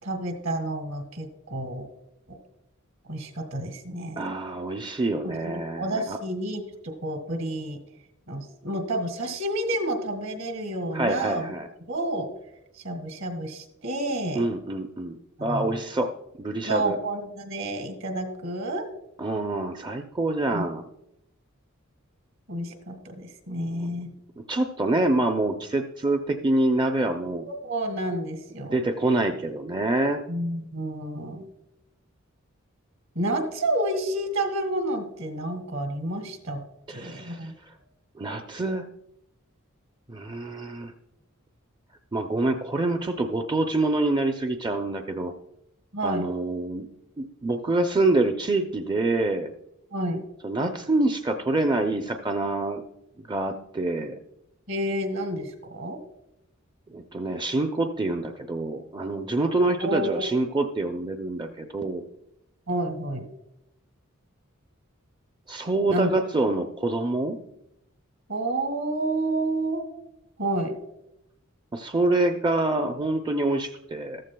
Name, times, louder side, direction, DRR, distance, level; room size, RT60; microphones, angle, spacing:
voice 1, 0.0-1.9 2.3-2.4 3.1-4.2 5.2-7.8 8.3-11.5 11.9-12.3 12.8-14.5 15.4-15.8 16.7-18.8 20.5-20.7 22.5-24.1 27.5-28.8 30.3-31.4 33.2-36.6 36.9-37.5 45.9-46.3 49.9-50.2 54.7-56.0 59.8-60.2 62.7-63.2 65.9-66.1 68.3-69.8 70.4-70.8, right 1 dB, 65° right, 7 dB, 1.9 m, -30 dB
voice 2, 4.2-6.2 10.9-11.7 14.3-16.1 16.4-17.0 19.2-20.8 23.7-23.9 24.5-27.5 28.7-30.2 36.9-37.7 38.2-38.9 40.1-40.9 42.1-45.3 46.0-46.9 47.2-49.5 50.4-52.8 53.2-54.2 56.9-62.0 65.5-67.4 71.7-74.2, right 2 dB, 20° right, 5 dB, 0.5 m, -26 dB
14.0 x 13.5 x 2.2 m, 0.83 s
head